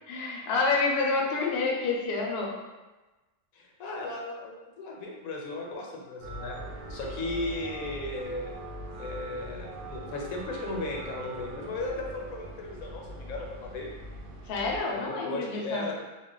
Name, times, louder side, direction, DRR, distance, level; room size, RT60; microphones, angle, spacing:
voice 1, 0.1-2.5 14.5-15.8, left 3 dB, 60° left, -1 dB, 0.7 m, -28 dB
voice 2, 3.5-6.6 6.9-8.5 8.9-13.9 14.9-16.0, left 2 dB, 80° left, 0 dB, 1.0 m, -36 dB
sound 1, 6.2-14.8, right 1 dB, 65° right, 0.5 m, -41 dB
2.4 x 2.1 x 3.7 m, 1.2 s
omnidirectional pair, 1.5 m